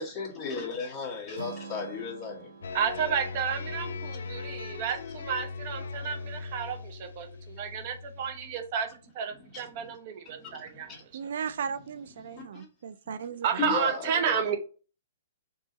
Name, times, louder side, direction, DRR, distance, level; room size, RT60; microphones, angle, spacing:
voice 1, 0.0-2.5 9.3-9.9 10.2-11.0 12.2-12.7 13.0-13.2 13.6-14.6, left 5 dB, 20° left, 1.6 m, -36 dB
Strum, 1.3-5.5, right 4 dB, 85° right, 0.9 m, -47 dB
sound 1, 2.6-8.8, left 4 dB, 80° left, 0.6 m, -39 dB
voice 2, 2.7-10.9 13.4-14.6, right 7 dB, 40° right, 0.7 m, -31 dB
voice 3, 11.1-13.8, right 7 dB, 65° right, 0.4 m, -36 dB
4.7 x 2.8 x 3.9 m
hypercardioid pair, 155°, 0 cm